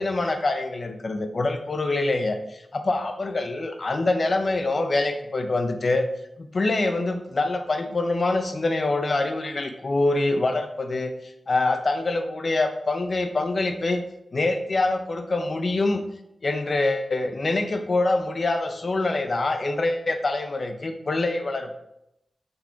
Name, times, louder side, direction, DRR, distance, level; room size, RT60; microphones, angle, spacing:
voice 1, 0.0-6.1 6.4-14.0 14.3-16.0 16.4-21.7, left 2 dB, 45° left, 7 dB, 1.0 m, -25 dB
10.5 x 6.8 x 4.6 m, 0.84 s
wide cardioid pair, 115°, 0 cm